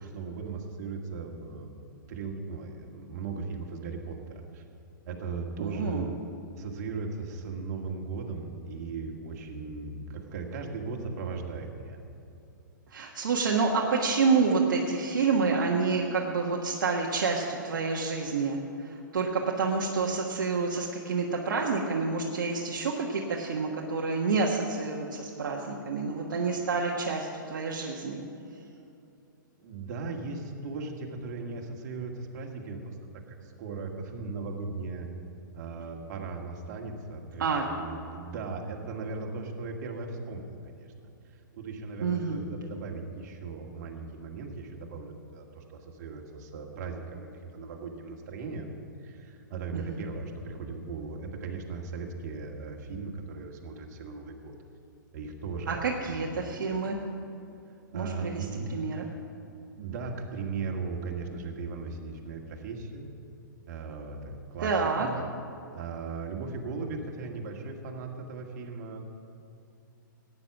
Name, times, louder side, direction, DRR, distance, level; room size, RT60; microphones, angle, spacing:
voice 1, 0.0-4.6 5.1-6.1 6.6-12.0 29.6-32.9 33.4-35.1 35.5-41.1 41.5-48.7 49.0-54.6 55.1-56.4 57.7-58.7 59.8-63.1 63.7-64.7 65.0-65.2 65.7-69.0, right 4 dB, 50° right, 1 dB, 2.0 m, -38 dB
voice 2, 5.6-6.0 12.9-28.3 37.4-37.6 42.0-42.4 49.7-50.0 55.7-57.0 57.9-58.4 58.7-59.0 64.6-65.1, right 4 dB, 70° right, -1 dB, 1.4 m, -28 dB
15.0 x 9.6 x 6.0 m, 2.7 s
hypercardioid pair, 120°, 11 cm